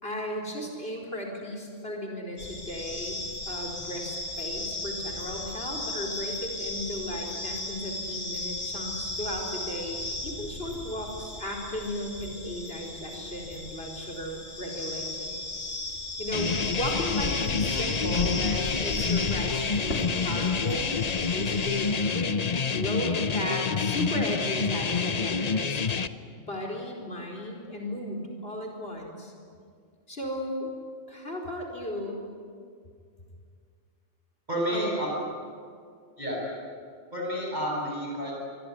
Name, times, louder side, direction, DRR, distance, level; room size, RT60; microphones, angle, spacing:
voice 1, 0.0-3.2 3.5-20.9 21.3-25.8 26.3-29.3 30.1-30.7 31.1-32.2 34.7-35.0, left 1 dB, 55° left, 0 dB, 4.7 m, -35 dB
sound 1, 2.4-21.9, left 2 dB, 75° left, 4.1 m, -36 dB
sound 2, 16.3-26.1, left 5 dB, 35° left, 0.9 m, -28 dB
voice 2, 34.5-35.1 36.2-36.4 37.1-38.4, equal, 35° right, -2 dB, 8.3 m, -30 dB
24.5 x 24.0 x 9.9 m, 2.2 s
omnidirectional pair, 1.2 m